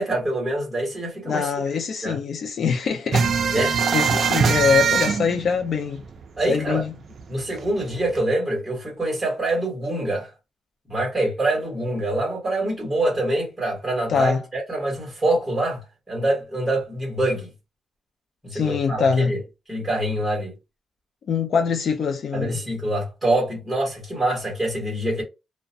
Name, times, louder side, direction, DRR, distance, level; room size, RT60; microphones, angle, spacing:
voice 1, 0.0-1.5 2.0-2.2 3.5-3.8 6.4-6.8 7.3-10.3 10.9-17.5 18.4-19.4 19.7-20.5 22.3-25.2, right 1 dB, 5° right, 1.2 m, -25 dB
voice 2, 1.3-6.0 6.5-6.9 14.1-14.4 18.5-19.3 21.3-22.6, left 6 dB, 55° left, 0.3 m, -24 dB
sound 1, 3.1-6.4 6.8-6.9 7.2-8.2, right 6 dB, 50° right, 0.3 m, -22 dB
2.3 x 2.1 x 2.6 m
wide cardioid pair, 150°, 0 cm